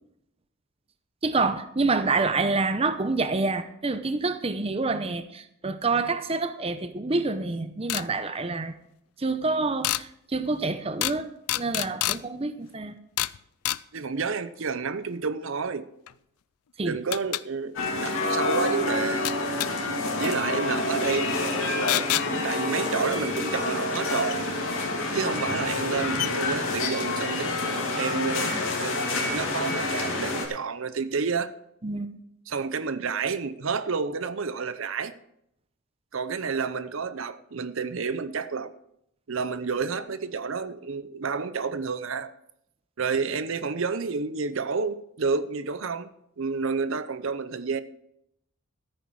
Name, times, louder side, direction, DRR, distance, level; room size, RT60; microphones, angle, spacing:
voice 1, 1.2-8.7 9.2-13.0 16.8-17.0 31.8-32.1, right 3 dB, 25° right, 0.6 m, -27 dB
sound 1, 7.9-8.1 9.8-10.0 11.0-11.2 11.5-12.2 13.2-13.4 13.7-13.8 16.1-16.2 17.1-17.4 19.3-19.7 21.9-22.3 24.3-24.4 25.4-25.5 25.8-25.9 26.2-26.3, left 15 dB, 90° left, 0.4 m, -27 dB
voice 2, 13.9-15.9 16.8-19.3 20.2-21.3 22.3-24.4 25.1-27.6 27.9-28.5 28.8-31.5 32.5-35.1 36.1-38.7 39.3-42.3 43.0-46.1 46.4-47.8, right 5 dB, 65° right, 0.6 m, -30 dB
sound 2, 17.7-30.5, left 2 dB, 65° left, 2.8 m, -28 dB
14.5 x 8.9 x 4.7 m
head